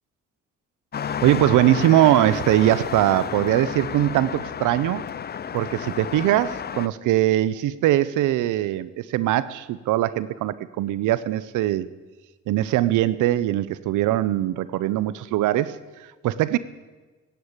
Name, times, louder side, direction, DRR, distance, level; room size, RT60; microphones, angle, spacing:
sound 1, 0.9-6.9, left 8 dB, 35° left, 0.5 m, -31 dB
voice 1, 1.1-5.1 5.5-11.9 12.5-16.6, right 14 dB, 85° right, 17 dB, 0.6 m, -21 dB
15.0 x 9.6 x 8.7 m, 1.2 s
cardioid pair, 90°, 30 cm